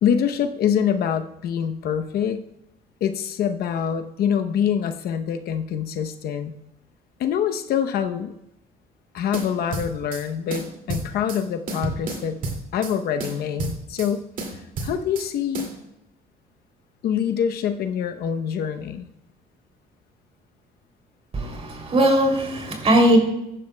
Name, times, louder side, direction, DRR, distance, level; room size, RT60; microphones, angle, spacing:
voice 1, 0.0-2.4 3.0-6.5 7.2-8.3 9.1-12.4 12.7-14.2 14.8-15.7 17.0-19.1, left 8 dB, 65° left, 7 dB, 0.8 m, -25 dB
sound 1, 9.3-10.2 10.5-11.4 11.7-12.9 13.2-14.1 14.4-15.3 15.5-15.7, right 3 dB, 55° right, 2.3 m, -31 dB
voice 2, 21.3-23.2, right 1 dB, 35° right, 2 dB, 2.9 m, -19 dB
15.0 x 11.0 x 2.2 m, 0.85 s
cardioid pair, 110°, 17 cm